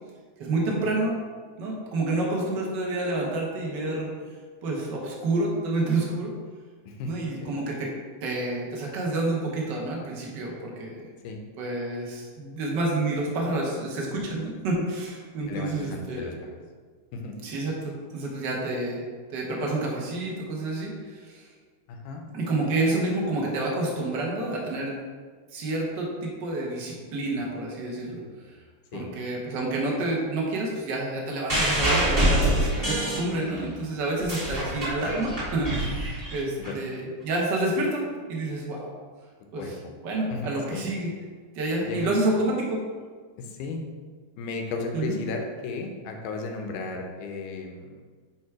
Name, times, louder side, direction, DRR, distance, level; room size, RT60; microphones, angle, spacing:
voice 1, 0.4-1.2 1.6-4.1 4.6-6.3 7.0-7.9 8.2-11.1 11.6-16.3 17.4-19.0 19.3-21.5 22.3-24.9 25.5-28.2 28.9-38.9 39.5-39.7 40.0-41.1 41.5-42.9 44.9-45.2, right 2 dB, 50° right, -2 dB, 1.4 m, -29 dB
voice 2, 15.5-16.6 17.1-17.4 21.9-22.2 22.6-22.7 28.9-29.1 36.6-36.8 39.6-39.7 40.3-40.8 41.8-42.1 43.4-43.8 44.4-48.0, left 4 dB, 85° left, 3 dB, 2.4 m, -34 dB
sound 1, 31.5-33.7 34.1-36.7 37.6-37.7, right 1 dB, 15° right, 1.5 m, -25 dB
9.6 x 3.2 x 4.7 m, 1.5 s
omnidirectional pair, 3.6 m